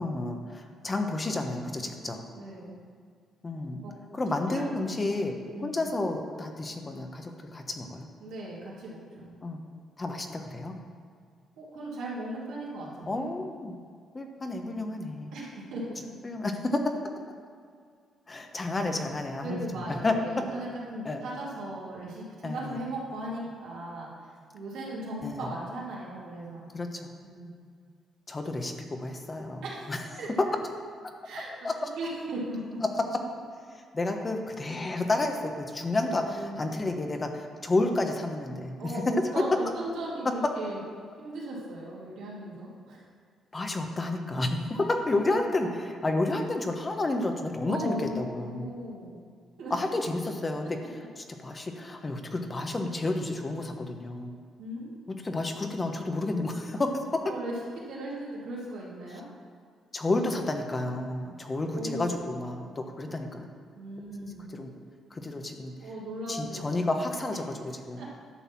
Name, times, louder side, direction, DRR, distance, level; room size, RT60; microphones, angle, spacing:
voice 1, 0.0-2.2 3.4-3.8 4.1-5.3 5.6-8.1 9.4-9.6 10.0-10.8 13.1-13.7 14.1-15.3 16.2-16.8 18.3-20.1 21.0-21.2 22.4-22.8 25.2-25.4 26.7-27.1 28.3-30.0 30.4-30.5 31.0-31.1 31.6-31.9 33.7-38.9 39.2-39.4 43.5-48.7 49.7-50.8 51.2-54.4 55.1-57.3 59.9-63.5 64.5-64.7 65.1-65.7 66.3-68.2, left 2 dB, 30° left, 4 dB, 1.0 m, -31 dB
voice 2, 2.3-2.8 3.8-3.9 4.5-4.7 5.5-5.8 8.2-9.3 11.6-13.3 15.3-16.0 18.9-26.7 27.2-27.5 29.6-29.9 30.2-30.3 31.2-31.5 32.0-32.8 36.1-36.9 38.8-40.8 41.2-43.0 45.2-45.4 47.7-49.2 49.6-49.7 54.6-54.9 57.3-59.3 61.7-62.3 63.7-64.5 65.8-66.7 68.0-68.1, right 1 dB, 85° right, -6 dB, 2.7 m, -38 dB
11.0 x 4.1 x 7.2 m, 2.1 s
cardioid pair, 90°, 0 cm